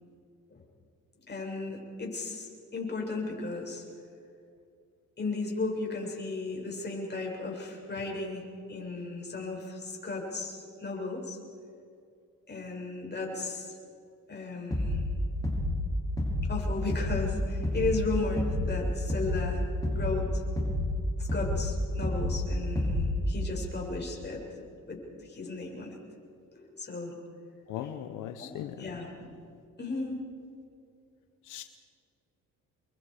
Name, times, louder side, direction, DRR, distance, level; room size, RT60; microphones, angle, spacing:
voice 1, 1.3-3.8 5.2-11.4 12.5-13.8 14.3-15.0 16.5-20.5 21.2-24.4 24.9-26.0 26.5-27.1 27.8-27.9 28.4-29.3 29.8-30.2, left 3 dB, 35° left, -1 dB, 7.1 m, -35 dB
sound 1, 14.7-15.1 15.4-15.8 16.2-16.5 16.9-17.3 17.6-18.0 18.4-18.7 19.1-19.5 19.8-20.2 20.6-20.9 21.3-21.7 22.0-22.4 22.8-23.2, left 1 dB, 10° left, 6.5 m, -29 dB
voice 2, 27.7-28.7 31.5-31.6, left 11 dB, 90° left, 8 dB, 1.0 m, -38 dB
29.5 x 23.5 x 5.1 m, 2.4 s
cardioid pair, 90°, 30 cm